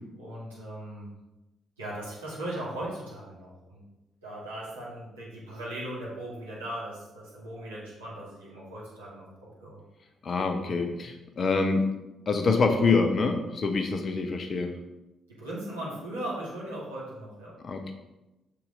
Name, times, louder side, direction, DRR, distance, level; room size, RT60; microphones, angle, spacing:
voice 1, 0.2-1.1 1.8-3.8 4.2-9.2 9.6-9.8 15.4-17.5, right 1 dB, 80° right, -9 dB, 2.6 m, -38 dB
voice 2, 10.2-11.9 12.3-14.7 17.6-17.9, left 4 dB, 45° left, 5 dB, 1.1 m, -26 dB
7.4 x 6.7 x 3.8 m, 1.0 s
figure-of-eight pair, 40°, 0 cm